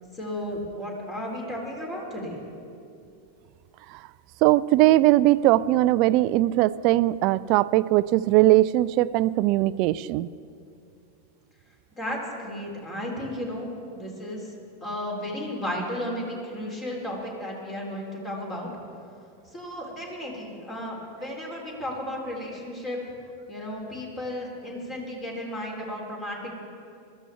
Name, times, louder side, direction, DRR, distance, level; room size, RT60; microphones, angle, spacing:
voice 1, 0.1-2.4 12.0-14.5 14.8-18.7 19.5-23.0 23.5-26.6, left 1 dB, 20° left, -1 dB, 3.3 m, -34 dB
voice 2, 4.4-10.3, right 16 dB, 45° right, 18 dB, 0.3 m, -20 dB
22.0 x 13.5 x 3.4 m, 2.5 s
figure-of-eight pair, 90°, 0 cm